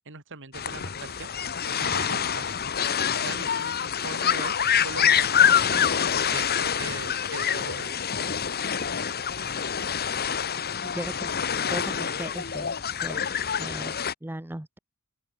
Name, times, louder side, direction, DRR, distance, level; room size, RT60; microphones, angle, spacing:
voice 1, 0.0-1.3 1.7-2.5 3.1-4.5 4.8-5.8 6.3-8.0, right 4 dB, 60° right, 3.1 m, -40 dB
sound 1, 0.5-14.1, left 8 dB, 45° left, 1.5 m, -26 dB
voice 2, 10.8-11.3 11.7-12.7 13.0-13.2 13.6-14.8, right 1 dB, 10° right, 0.7 m, -37 dB
open air
head